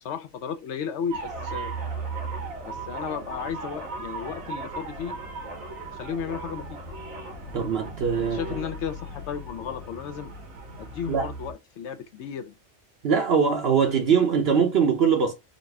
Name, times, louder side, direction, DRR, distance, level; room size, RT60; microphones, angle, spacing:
voice 1, 0.0-1.7 2.6-5.2 5.9-6.8 8.3-10.3 10.8-12.5, left 7 dB, 65° left, 0.8 m, -34 dB
sound 1, 1.1-11.5, right 3 dB, 85° right, 1.6 m, -37 dB
voice 2, 7.5-8.4 11.1-11.3 13.0-15.3, right 6 dB, 55° right, 0.8 m, -22 dB
4.0 x 2.6 x 3.4 m
omnidirectional pair, 1.4 m